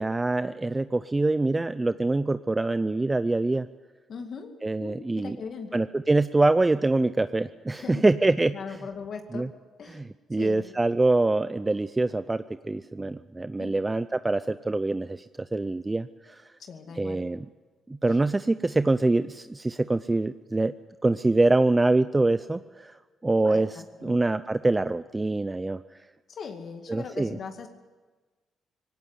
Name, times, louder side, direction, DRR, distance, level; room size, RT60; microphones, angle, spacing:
voice 1, 0.0-3.7 4.6-5.4 5.7-8.5 9.3-9.5 9.9-15.2 15.5-16.4 17.0-17.5 17.9-20.7 21.0-23.0 23.2-23.7 24.0-25.8 26.9-27.4, right 2 dB, 20° right, 12 dB, 0.6 m, -24 dB
voice 2, 4.1-4.5 4.8-5.7 7.7-9.5 9.8-10.0 10.3-10.6 13.6-13.9 16.6-17.2 18.1-18.2 23.4-24.2 26.3-27.7, left 5 dB, 55° left, 5 dB, 2.2 m, -40 dB
19.0 x 17.5 x 9.6 m, 1.3 s
cardioid pair, 90°, 0 cm